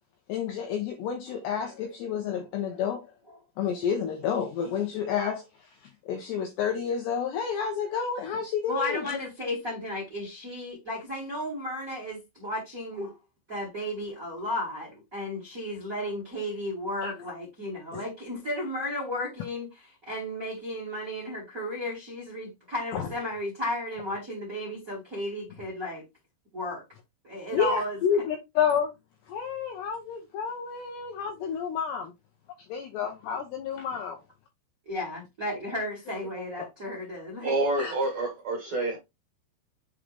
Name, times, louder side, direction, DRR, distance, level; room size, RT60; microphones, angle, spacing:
voice 1, 0.3-3.1 3.6-9.3 17.0-17.1 17.9-18.0 22.9-23.1 27.5-28.9 29.3-32.1 32.7-34.2 37.8-37.9, left 7 dB, 80° left, 2.5 m, -30 dB
voice 2, 8.7-13.1 13.5-26.0 26.5-26.8 27.2-28.0 34.9-37.5, left 1 dB, 25° right, 1.8 m, -34 dB
voice 3, 37.4-39.0, right 2 dB, 40° right, 2.7 m, -27 dB
7.5 x 3.9 x 3.3 m
omnidirectional pair, 6.0 m